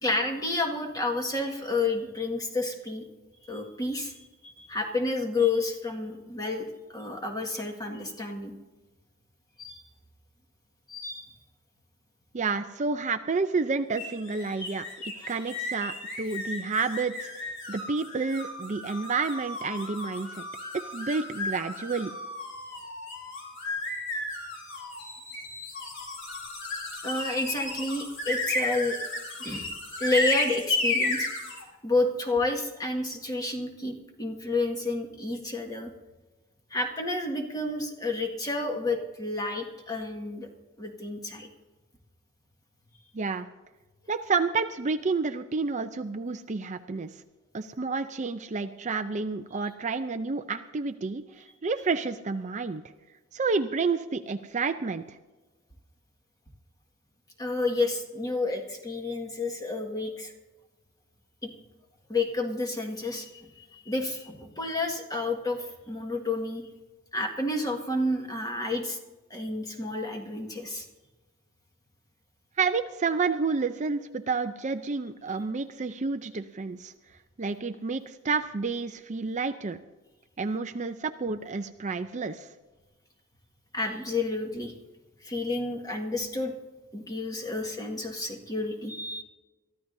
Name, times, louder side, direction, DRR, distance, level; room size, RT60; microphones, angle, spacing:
voice 1, 0.0-3.1 3.4-8.5 9.6-9.8 10.9-11.3 15.2-15.5 27.0-29.0 29.4-29.7 30.0-31.3 31.8-35.9 36.7-40.5 40.8-41.5 57.4-60.3 61.4-61.5 62.1-66.7 67.1-69.0 69.3-70.9 83.7-84.7 85.2-86.5 86.9-89.2, left 2 dB, 15° left, 2 dB, 1.8 m, -30 dB
voice 2, 12.3-14.9 15.3-20.4 20.9-22.1 43.1-43.5 44.1-47.1 47.5-52.8 53.3-55.2 72.6-76.9 77.4-79.8 80.4-82.5, right 4 dB, 35° right, 8 dB, 0.5 m, -30 dB
sound 1, 14.0-31.6, left 2 dB, 60° left, 3.7 m, -34 dB
23.0 x 14.0 x 2.7 m, 1.2 s
head